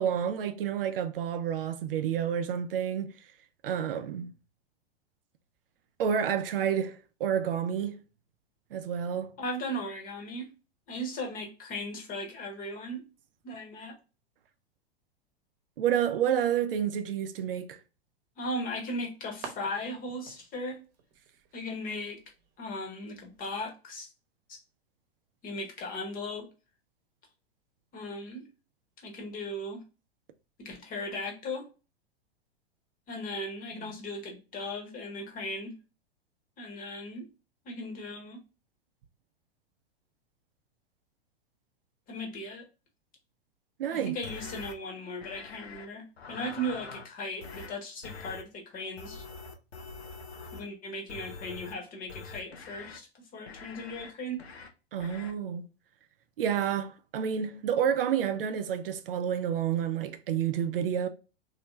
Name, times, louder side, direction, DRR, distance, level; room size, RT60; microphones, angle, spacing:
voice 1, 0.0-3.1 3.6-4.3 6.0-8.0 8.7-9.4 15.8-17.8 33.7-33.9 43.8-44.1 54.9-55.6 56.4-61.1, right 8 dB, 60° right, 0.5 m, -29 dB
voice 2, 9.4-10.5 10.9-13.0 13.4-13.9 18.4-20.8 21.5-22.2 22.6-24.1 24.5-24.6 25.4-26.5 27.9-28.4 29.0-29.8 30.6-31.7 33.1-35.8 36.6-37.3 37.6-38.4 42.1-42.6 43.9-49.2 50.5-54.4, left 1 dB, 25° left, 1.0 m, -37 dB
sound 1, 18.5-23.6, right 6 dB, 40° right, 1.0 m, -51 dB
sound 2, 44.2-44.7 45.2-45.9 46.2-47.1 47.4-47.7 48.0-48.4 49.0-50.7 51.1-51.7 52.1-53.0 53.5-54.1 54.4-54.7 55.0-55.3, left 4 dB, 90° left, 0.6 m, -44 dB
3.2 x 2.7 x 2.9 m
figure-of-eight pair, 100°, 31 cm